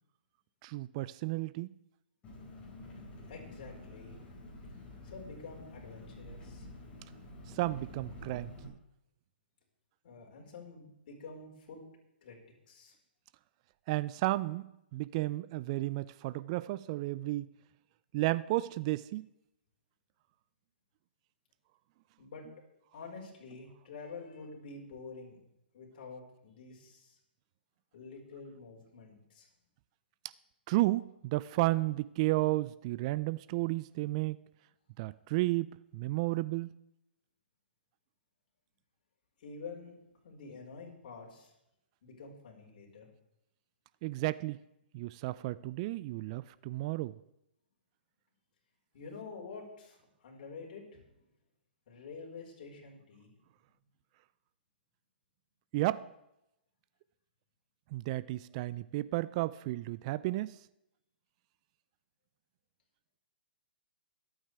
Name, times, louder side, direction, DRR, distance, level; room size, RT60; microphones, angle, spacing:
voice 1, 0.6-1.7 7.5-8.7 13.9-17.5 18.1-19.3 30.7-34.4 35.0-36.7 44.0-44.6 44.9-47.2 55.7-56.1 57.9-60.6, right 19 dB, 35° right, 0.4 m, -33 dB
Engine, 2.2-8.7, left 1 dB, 20° left, 5.4 m, -49 dB
voice 2, 3.3-4.2 5.1-6.7 10.0-11.8 12.2-12.4 12.7-12.9 22.2-22.4 22.9-25.4 25.7-27.2 27.9-29.5 39.4-39.9 40.2-41.5 42.0-43.1 48.9-51.1 51.9-53.3, left 4 dB, 50° left, 4.8 m, -48 dB
24.0 x 8.9 x 3.5 m
hypercardioid pair, 135°, 6 cm